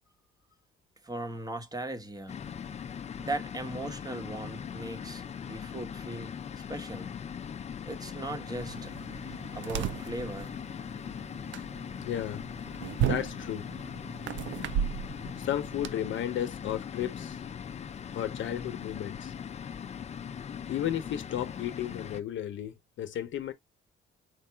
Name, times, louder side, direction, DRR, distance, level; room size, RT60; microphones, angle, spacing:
voice 1, 1.0-2.4 3.2-6.3 6.7-7.2 7.8-8.9 9.5-10.6, right 2 dB, 20° right, 1.0 m, -38 dB
sound 1, 2.3-22.2, left 7 dB, 35° left, 0.4 m, -40 dB
sound 2, 8.6-15.9, right 10 dB, 70° right, 0.4 m, -35 dB
voice 2, 12.0-12.4 13.0-13.7 15.4-17.4 18.1-19.3 20.7-23.5, left 11 dB, 75° left, 0.8 m, -33 dB
4.7 x 2.2 x 4.3 m
cardioid pair, 90°, 20 cm